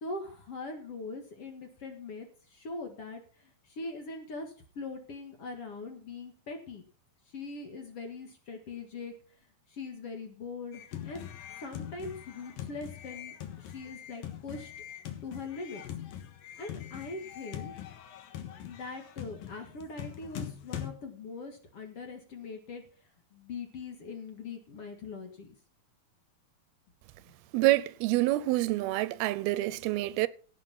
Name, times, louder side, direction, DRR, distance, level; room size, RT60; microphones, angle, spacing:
voice 1, 0.0-3.2 3.7-6.9 7.3-9.1 9.7-11.3 11.6-14.7 15.2-15.8 16.6-17.7 18.6-22.8 23.3-25.5, left 3 dB, 50° left, 2.2 m, -41 dB
sound 1, 10.7-20.9, left 10 dB, 70° left, 3.1 m, -42 dB
voice 2, 27.5-30.3, right 17 dB, 90° right, 2.7 m, -27 dB
17.0 x 6.5 x 5.9 m
omnidirectional pair, 4.3 m